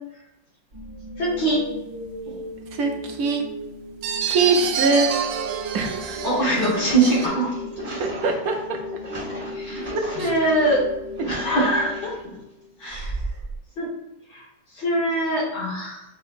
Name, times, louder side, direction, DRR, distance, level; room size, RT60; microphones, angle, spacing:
sound 1, 0.7-12.8, left 1 dB, 45° right, 1.9 m, -37 dB
voice 1, 1.2-1.6 2.3-2.4 6.2-7.5 7.9-8.0 9.6-9.9 10.2-10.8 11.3-12.4 12.8-13.1 13.8-13.9 14.3-14.4 14.8-16.0, right 1 dB, 60° left, -6 dB, 1.8 m, -23 dB
voice 2, 2.7-3.4 4.3-5.1 5.7-6.2 8.0-8.8 9.9-10.3 11.2-11.4, right 3 dB, 65° right, 2 dB, 0.9 m, -23 dB
sound 2, 4.0-7.3, right 7 dB, 85° right, 1.4 m, -27 dB
sound 3, 6.7-10.5 10.9-12.2 12.8-13.6, right 1 dB, 20° right, 1.5 m, -35 dB
6.7 x 2.9 x 2.5 m, 0.89 s
omnidirectional pair, 2.2 m